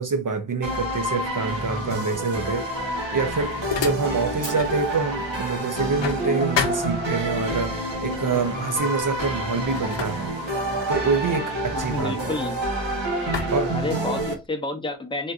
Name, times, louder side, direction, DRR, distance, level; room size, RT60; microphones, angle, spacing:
voice 1, 0.0-10.3 10.9-12.4 13.5-13.8, right 4 dB, 50° right, 0.5 m, -26 dB
sound 1, 0.6-14.3, right 1 dB, 80° right, 1.1 m, -28 dB
sound 2, 2.8-4.8 5.2-7.5 8.4-8.6 8.9-12.8 13.3-14.5, left 7 dB, 75° left, 0.6 m, -33 dB
Fire, 4.4-6.5, right 2 dB, 35° right, 1.0 m, -43 dB
voice 2, 11.7-12.6 13.7-15.3, left 2 dB, 10° left, 0.6 m, -30 dB
3.6 x 2.5 x 2.4 m
wide cardioid pair, 70°, 44 cm